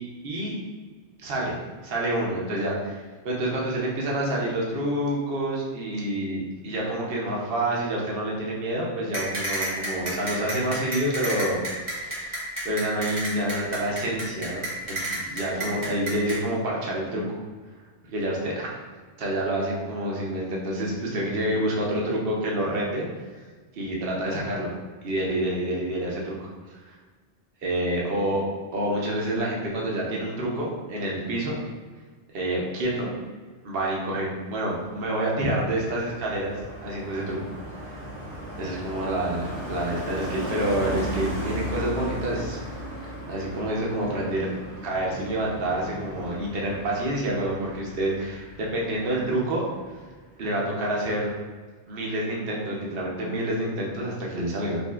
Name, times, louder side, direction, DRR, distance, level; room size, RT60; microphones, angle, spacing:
voice 1, 1.2-1.5 1.8-11.6 11.9-14.6 14.9-17.4 18.1-18.8 19.2-23.0 23.7-24.7 25.0-26.5 26.8-26.9 27.6-28.4 28.7-31.7 32.3-33.1 33.6-36.6 36.8-37.4 37.8-38.0 38.6-42.6 43.0-44.5 44.8-49.6 50.4-51.3 51.9-54.8, right 1 dB, 60° right, -3 dB, 1.0 m, -28 dB
sound 1, 9.1-16.4, right 1 dB, 25° right, 1.0 m, -30 dB
Car passing by, 34.8-49.6 49.8-50.2, equal, 75° right, 1.3 m, -36 dB
5.1 x 2.6 x 2.4 m, 1.4 s
omnidirectional pair, 1.2 m